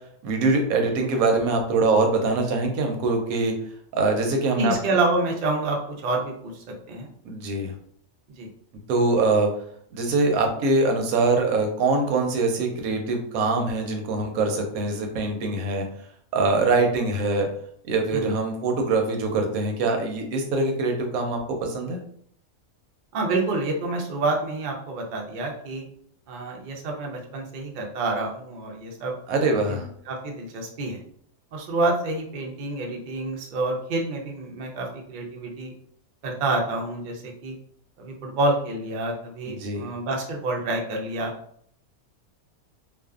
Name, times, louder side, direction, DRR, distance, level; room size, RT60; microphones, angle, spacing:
voice 1, 0.2-3.6 4.0-4.8 7.2-7.7 8.9-9.5 9.9-15.9 16.3-17.5 17.9-22.0 29.3-29.9 39.5-39.9, right 3 dB, 85° right, 4 dB, 1.0 m, -23 dB
voice 2, 4.5-7.1 8.4-8.5 18.1-18.3 23.1-25.9 26.3-29.2 29.7-31.0 31.5-35.7 36.2-37.5 38.0-41.3, right 2 dB, 65° right, 1 dB, 0.4 m, -28 dB
2.4 x 2.2 x 2.4 m, 0.64 s
omnidirectional pair, 1.4 m